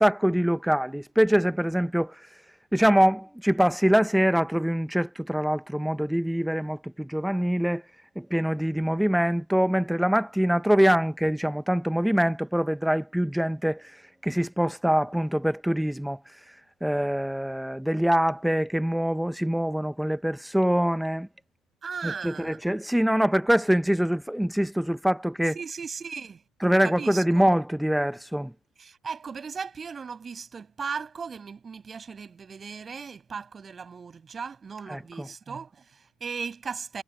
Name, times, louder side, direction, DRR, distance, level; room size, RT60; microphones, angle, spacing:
voice 1, 0.0-2.1 2.7-7.8 8.2-13.8 14.2-16.2 16.8-21.3 22.0-25.5 26.6-28.5 34.9-35.3, equal, 5° right, 1.1 m, -24 dB
voice 2, 21.8-22.6 25.5-26.4 26.8-27.5 28.8-37.0, right 5 dB, 35° right, 7.2 m, -37 dB
supercardioid pair, 75°, 0 cm